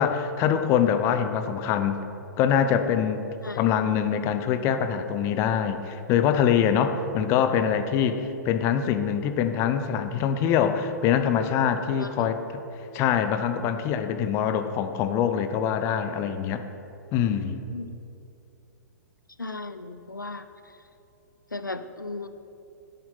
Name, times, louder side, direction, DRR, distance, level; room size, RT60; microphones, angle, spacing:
voice 1, 0.0-2.0 2.4-3.3 3.5-12.6 12.9-16.6 17.1-17.6, left 8 dB, 25° left, 9 dB, 0.7 m, -24 dB
voice 2, 12.0-12.3 17.7-17.9 19.4-20.5 21.5-22.3, left 2 dB, 85° left, 11 dB, 0.5 m, -36 dB
10.5 x 9.1 x 5.6 m, 2.8 s
figure-of-eight pair, 110°, 10 cm